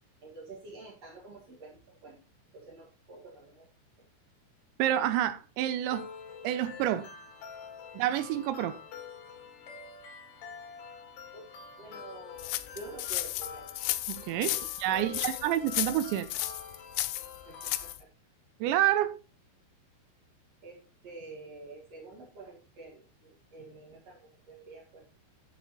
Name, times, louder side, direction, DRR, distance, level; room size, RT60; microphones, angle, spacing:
voice 1, 0.2-2.2 2.5-3.7 11.3-11.5 11.8-13.7 14.5-15.3 17.5-18.1 20.6-25.0, right 3 dB, 55° right, 1.9 m, -48 dB
voice 2, 4.8-6.1 6.4-7.1 7.9-8.8 14.1-16.3 18.6-19.2, right 12 dB, 85° right, 2.6 m, -28 dB
sound 1, 5.9-17.9, left 6 dB, 65° left, 3.4 m, -47 dB
sound 2, 12.4-18.0, left 16 dB, 85° left, 3.2 m, -34 dB
11.0 x 7.7 x 3.0 m
omnidirectional pair, 5.6 m